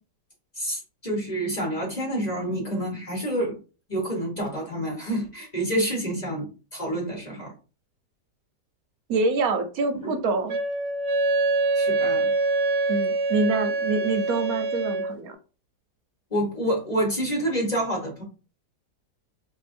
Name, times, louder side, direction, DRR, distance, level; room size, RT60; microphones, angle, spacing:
voice 1, 0.6-3.5 3.9-6.5 6.7-7.5 10.0-10.1 11.7-12.3 16.3-18.2, right 1 dB, 30° left, -1 dB, 1.0 m, -28 dB
voice 2, 9.1-10.6 12.9-15.4, right 3 dB, 70° right, 6 dB, 1.0 m, -26 dB
Wind instrument woodwind instrument, 10.5-15.2, right 3 dB, 85° right, 1.3 m, -25 dB
4.2 x 2.8 x 2.6 m, 0.34 s
omnidirectional pair, 1.8 m